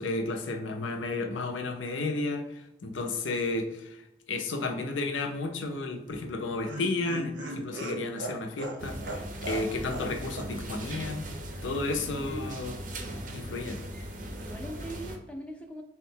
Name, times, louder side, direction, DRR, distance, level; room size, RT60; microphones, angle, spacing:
voice 1, 0.0-11.3 11.6-12.8 13.3-13.8, left 2 dB, 90° left, 4 dB, 0.6 m, -32 dB
Laughter, 6.1-10.1 10.4-10.5 10.8-10.9, right 1 dB, 90° right, 0.7 m, -38 dB
sound 1, 8.8-15.2, right 1 dB, 45° right, 0.5 m, -39 dB
voice 2, 12.1-12.5 14.4-15.8, equal, 5° left, 2 dB, 0.4 m, -40 dB
3.6 x 2.2 x 4.4 m, 0.90 s
head